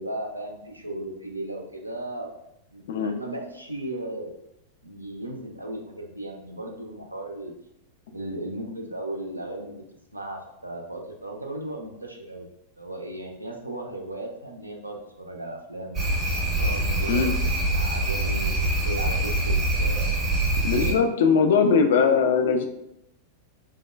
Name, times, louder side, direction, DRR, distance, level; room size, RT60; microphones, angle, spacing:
voice 1, 0.0-2.3 2.7-4.4 4.8-7.5 8.1-9.8 10.1-12.5 12.8-16.0 16.6-17.3 17.7-18.6 18.8-20.2 20.8-21.9, right 1 dB, 85° right, 1 dB, 0.4 m, -36 dB
sound 1, 15.9-20.9, right 1 dB, 25° right, 0.6 m, -24 dB
voice 2, 20.6-22.7, left 5 dB, 60° left, 6 dB, 0.3 m, -20 dB
3.3 x 2.1 x 2.3 m, 0.82 s
figure-of-eight pair, 95°, 0 cm